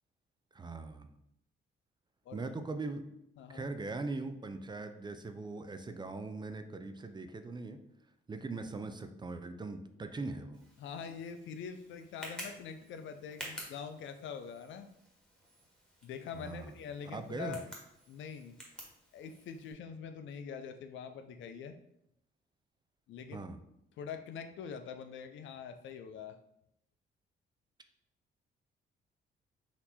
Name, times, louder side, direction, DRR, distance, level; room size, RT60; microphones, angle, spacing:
voice 1, 0.5-1.1 2.3-3.0 3.5-7.8 8.3-10.6 16.4-16.7 17.0-17.6 23.3-23.6, right 3 dB, 20° right, 8 dB, 0.4 m, -40 dB
voice 2, 3.4-3.7 10.8-14.9 16.0-17.6 18.1-18.6 19.1-21.7 23.1-23.5 24.0-26.4, left 6 dB, 70° left, 8 dB, 0.5 m, -44 dB
Tick, 10.5-19.7, equal, 5° left, 1.5 m, -51 dB
4.3 x 2.8 x 4.1 m, 0.77 s
cardioid pair, 90°, 20 cm